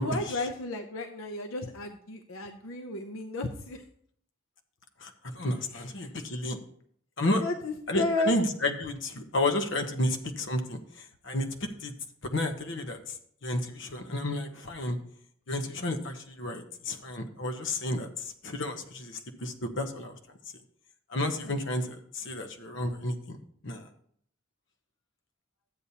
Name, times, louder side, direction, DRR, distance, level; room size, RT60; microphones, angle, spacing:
voice 1, 0.0-3.8 5.7-6.1 7.4-8.3 21.4-21.6, left 2 dB, 90° left, 5 dB, 0.7 m, -33 dB
voice 2, 5.0-6.6 7.2-7.4 7.9-11.5 11.8-11.9 12.2-15.0 15.5-20.2 21.1-23.4 23.6-23.9, left 1 dB, 65° left, 6 dB, 1.0 m, -31 dB
12.0 x 8.2 x 2.8 m, 0.65 s
head